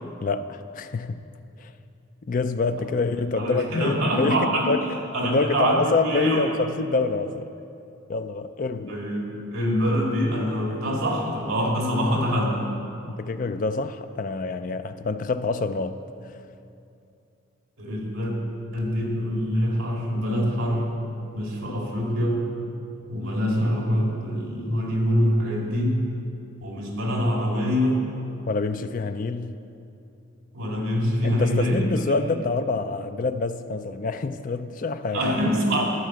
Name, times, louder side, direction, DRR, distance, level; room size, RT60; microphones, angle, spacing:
voice 1, 0.2-1.2 1.6-1.7 2.3-7.5 8.1-9.0 13.0-16.0 28.5-29.6 31.2-35.3, left 3 dB, 40° left, 0.4 m, -27 dB
voice 2, 3.4-4.7 5.1-6.5 8.9-12.7 17.8-18.3 18.7-20.8 21.3-22.4 23.1-26.0 26.6-28.0 30.5-31.9 32.2-32.3 35.1-35.8, equal, 75° right, 2.2 m, -24 dB
12.5 x 4.9 x 7.5 m
head